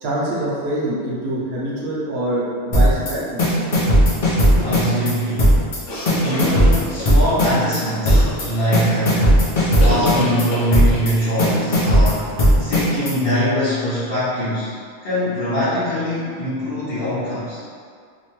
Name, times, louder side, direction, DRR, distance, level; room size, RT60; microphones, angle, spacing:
voice 1, 0.0-3.6, right 1 dB, 65° right, -6 dB, 0.8 m, -25 dB
sound 1, 2.7-3.1 3.4-5.1 5.4-5.8 6.1-7.8 8.1-8.4 8.7-10.4 10.7-11.1 11.4-13.1, equal, 40° left, 0.5 m, -15 dB
voice 2, 4.5-5.6 6.2-9.4 9.8-12.3 12.6-14.7 15.0-17.6, equal, 60° left, -13 dB, 1.0 m, -23 dB
sound 2, 5.9-7.1 8.1-8.5 9.8-11.1, equal, 90° left, 1.0 m, -28 dB
2.8 x 2.2 x 3.0 m, 2.1 s
omnidirectional pair, 1.2 m